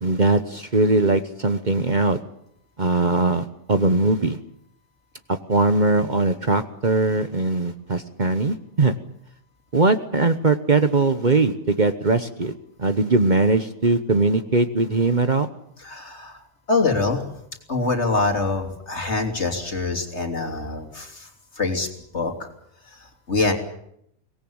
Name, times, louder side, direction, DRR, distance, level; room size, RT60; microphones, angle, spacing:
voice 1, 0.0-2.2 2.8-4.4 5.3-8.9 9.7-12.5 12.8-15.5, right 3 dB, 35° right, 10 dB, 1.2 m, -20 dB
voice 2, 15.8-16.4 16.7-17.2 17.7-21.3 21.6-21.9 22.1-22.5 22.9-23.5, left 3 dB, 55° left, 4 dB, 3.4 m, -24 dB
23.5 x 18.5 x 8.8 m, 0.73 s
omnidirectional pair, 1.4 m